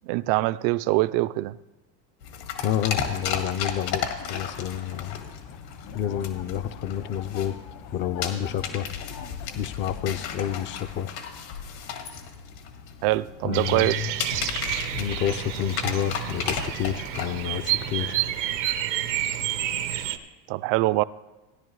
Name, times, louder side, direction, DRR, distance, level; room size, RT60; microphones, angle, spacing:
voice 1, 0.0-1.6 13.0-14.1 20.5-21.0, right 18 dB, 55° right, 0.5 m, -24 dB
sound 1, 2.2-18.5, left 7 dB, 80° left, 1.9 m, -35 dB
voice 2, 2.6-5.2 5.9-7.6 7.9-8.9 9.5-11.1 13.4-14.1 15.0-18.2, left 10 dB, 30° left, 0.3 m, -29 dB
sound 2, 4.2-10.9, left 7 dB, 65° left, 1.1 m, -43 dB
Bird vocalization bird call bird song, 13.5-20.2, right 13 dB, 85° right, 1.0 m, -29 dB
17.0 x 10.5 x 3.1 m
supercardioid pair, 110°, 49 cm